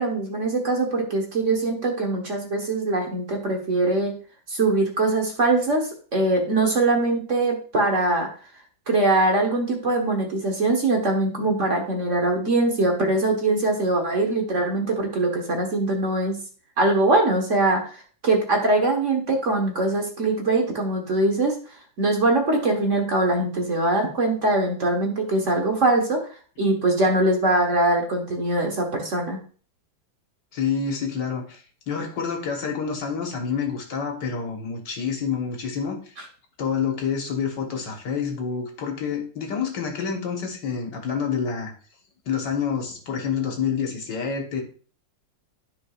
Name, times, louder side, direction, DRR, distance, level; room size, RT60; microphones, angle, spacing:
voice 1, 0.0-4.1 4.5-8.3 8.9-16.4 16.8-21.6 22.0-26.2 26.6-29.4, right 2 dB, 45° right, 1 dB, 1.5 m, -22 dB
voice 2, 30.5-36.0 36.6-41.7 42.3-44.6, left 6 dB, 65° left, 2 dB, 2.0 m, -28 dB
13.0 x 4.9 x 2.4 m, 0.40 s
omnidirectional pair, 2.0 m